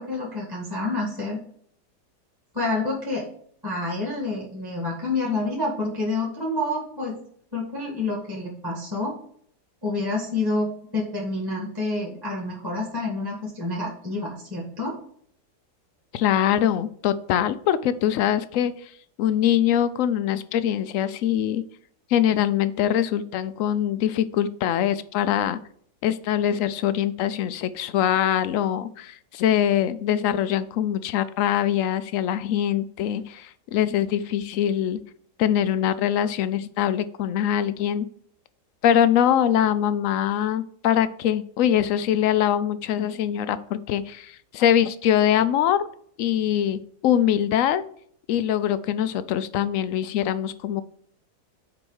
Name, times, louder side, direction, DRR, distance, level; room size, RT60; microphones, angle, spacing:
voice 1, 0.0-1.4 2.5-3.3 3.6-7.2 7.5-9.1 9.8-15.0, left 2 dB, 15° right, -3 dB, 1.8 m, -28 dB
voice 2, 16.1-18.9 19.2-21.6 22.1-25.6 26.0-35.0 35.4-38.1 38.8-45.9 46.2-47.8 48.3-50.8, left 10 dB, 70° left, 13 dB, 0.8 m, -23 dB
6.1 x 4.9 x 6.5 m, 0.62 s
omnidirectional pair, 1.8 m